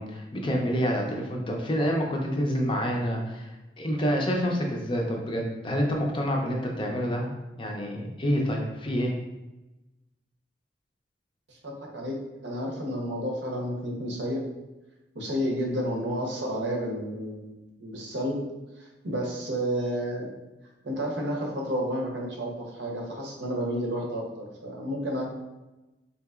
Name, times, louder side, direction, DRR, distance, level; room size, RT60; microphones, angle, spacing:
voice 1, 0.0-3.5 3.8-7.3 7.6-9.1, equal, 30° left, 1 dB, 0.4 m, -27 dB
voice 2, 11.5-14.4 15.1-18.4 18.8-20.3 20.8-25.3, equal, 85° right, 0 dB, 0.8 m, -31 dB
3.8 x 2.8 x 2.3 m, 1.0 s
head